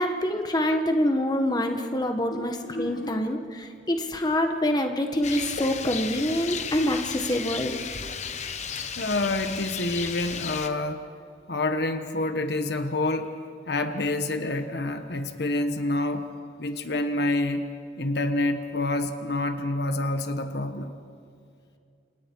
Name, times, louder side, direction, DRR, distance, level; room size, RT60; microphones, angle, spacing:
voice 1, 0.0-7.7, left 1 dB, 20° left, 4 dB, 1.5 m, -26 dB
voice 2, 2.3-3.2 9.0-11.0 11.5-13.4 13.7-16.3 16.6-17.7 18.0-20.9, left 2 dB, 60° left, 7 dB, 1.3 m, -28 dB
Rain, 5.2-10.7, left 6 dB, 40° left, 1.0 m, -34 dB
29.0 x 28.0 x 4.7 m, 2.4 s
head